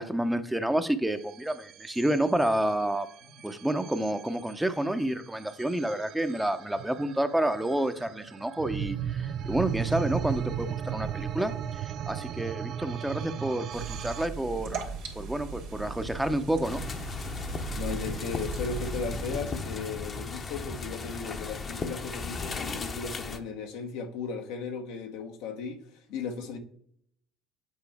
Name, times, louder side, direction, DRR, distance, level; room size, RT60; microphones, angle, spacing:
voice 1, 0.0-3.1 3.4-14.8 15.1-16.8, right 1 dB, 5° right, 0.8 m, -29 dB
sound 1, 1.2-14.3, right 9 dB, 60° right, 0.4 m, -36 dB
sound 2, 13.7-19.3, right 4 dB, 80° right, 1.8 m, -38 dB
sound 3, 16.6-23.4, left 4 dB, 40° left, 0.9 m, -36 dB
voice 2, 17.8-25.8 26.1-26.6, left 5 dB, 75° left, 1.0 m, -36 dB
8.3 x 4.4 x 3.5 m
hypercardioid pair, 70°, 0 cm